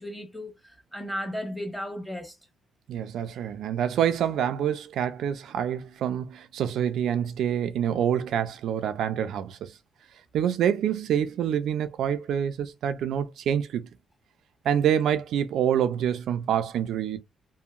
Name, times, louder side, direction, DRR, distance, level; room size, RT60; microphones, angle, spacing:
voice 1, 0.0-2.3, equal, 10° left, 1.1 m, -35 dB
voice 2, 2.9-9.8 10.3-13.9 14.6-17.2, right 9 dB, 80° right, 0.3 m, -26 dB
2.8 x 2.6 x 2.4 m
cardioid pair, 110°, 0 cm